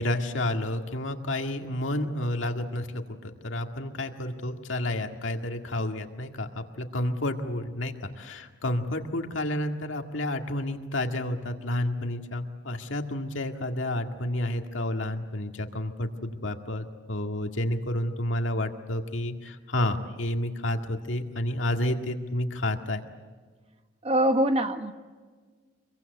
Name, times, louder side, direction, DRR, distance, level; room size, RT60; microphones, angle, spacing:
voice 1, 0.0-23.0, left 1 dB, 90° left, 4 dB, 1.9 m, -30 dB
voice 2, 24.0-24.9, right 1 dB, 30° right, 8 dB, 1.2 m, -23 dB
25.5 x 23.0 x 8.2 m, 1.4 s
head